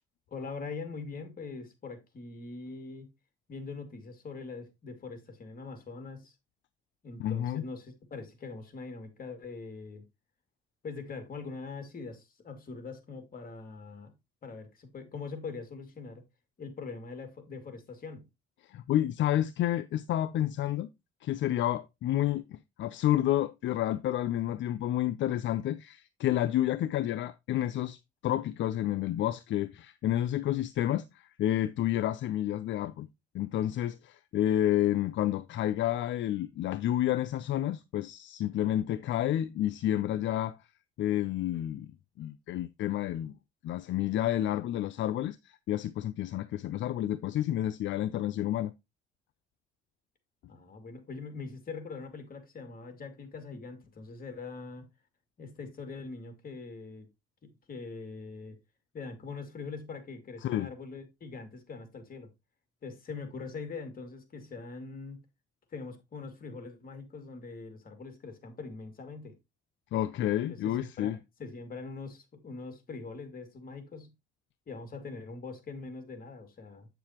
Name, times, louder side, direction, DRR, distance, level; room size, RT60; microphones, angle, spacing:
voice 1, 0.3-3.1 3.5-6.3 7.0-10.0 10.8-14.1 14.4-16.2 16.6-18.3 38.8-39.0 50.5-54.9 55.4-57.1 57.4-58.6 58.9-62.3 62.8-65.2 65.7-69.4 70.5-74.1 74.7-76.9, left 4 dB, 45° left, 2.3 m, -42 dB
voice 2, 7.2-7.6 18.7-20.9 21.2-28.0 28.2-33.1 33.3-40.6 41.0-41.9 42.2-43.3 43.6-45.4 45.7-48.7 60.4-60.7 69.9-71.2, left 12 dB, 70° left, 0.5 m, -30 dB
8.1 x 6.9 x 2.9 m
cardioid pair, 90°, 20 cm